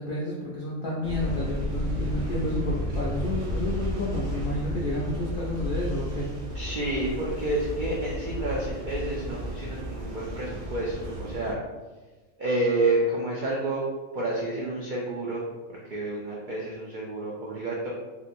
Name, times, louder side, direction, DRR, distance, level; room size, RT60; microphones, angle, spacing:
voice 1, 0.0-6.3, left 1 dB, 75° left, -5 dB, 0.4 m, -30 dB
sound 1, 1.0-11.5, equal, 75° right, 0.9 m, -32 dB
voice 2, 6.5-11.6 12.4-13.8 14.1-15.4 15.7-17.9, right 2 dB, 90° right, -4 dB, 0.4 m, -29 dB
2.8 x 2.4 x 2.5 m, 1.2 s
omnidirectional pair, 1.4 m